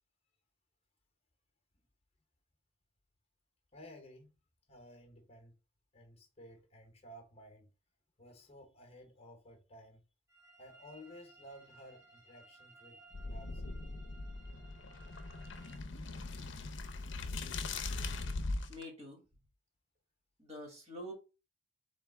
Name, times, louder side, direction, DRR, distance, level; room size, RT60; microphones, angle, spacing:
voice 1, 3.7-4.3 4.7-5.5 5.9-7.7 8.2-10.0 10.6-13.0 13.3-13.8, equal, 30° left, 0.9 m, -55 dB
sound 1, 10.3-15.8, right 2 dB, 15° right, 1.3 m, -60 dB
sound 2, 13.1-18.8, left 3 dB, 65° left, 0.6 m, -40 dB
voice 2, 18.7-19.2 20.4-21.1, equal, 35° right, 2.0 m, -46 dB
3.9 x 3.3 x 3.4 m
head